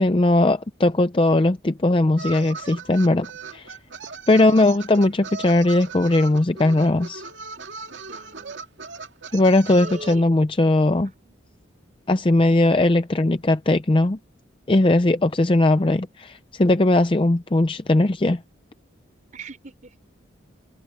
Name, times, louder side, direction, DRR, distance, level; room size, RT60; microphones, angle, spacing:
voice 1, 0.0-3.3 3.5-3.8 4.3-7.2 9.3-11.1 12.1-14.2 14.7-18.4, left 2 dB, 25° left, 0.5 m, -19 dB
sound 1, 2.2-10.2, right 5 dB, 70° right, 2.3 m, -38 dB
voice 2, 8.1-8.6 9.7-10.2 11.0-11.4 12.3-12.6 19.3-19.9, right 3 dB, 40° right, 4.2 m, -42 dB
head